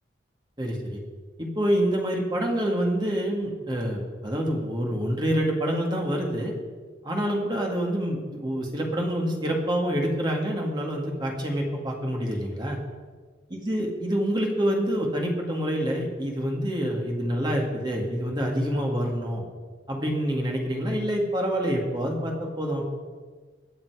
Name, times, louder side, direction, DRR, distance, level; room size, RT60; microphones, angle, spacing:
voice 1, 0.6-1.0 1.4-6.5 7.0-12.8 13.5-19.4 19.9-22.9, equal, 25° right, 0 dB, 2.1 m, -27 dB
21.5 x 7.2 x 4.9 m, 1.5 s
head